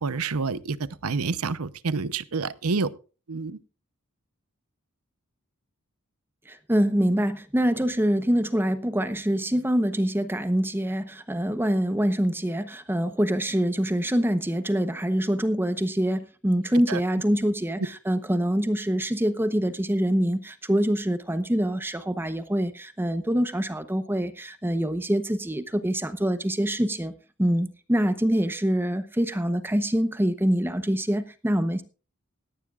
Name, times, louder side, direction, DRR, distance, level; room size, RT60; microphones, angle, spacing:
voice 1, 0.0-2.9 3.3-3.6 16.9-17.0, right 4 dB, 85° right, 16 dB, 0.8 m, -28 dB
voice 2, 6.5-27.1 27.4-31.8, equal, 10° right, 11 dB, 0.8 m, -25 dB
18.0 x 15.0 x 2.4 m, 0.34 s
head